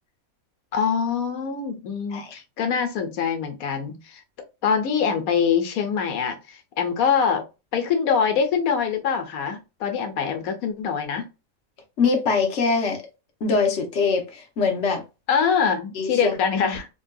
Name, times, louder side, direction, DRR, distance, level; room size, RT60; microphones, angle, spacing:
voice 1, 0.7-4.2 4.6-7.4 7.7-11.3 15.3-16.9, left 6 dB, 90° left, 1.2 m, -24 dB
voice 2, 12.0-13.0 13.4-15.0 15.9-16.3, left 4 dB, 60° left, 1.1 m, -23 dB
3.6 x 2.7 x 2.2 m
omnidirectional pair, 1.5 m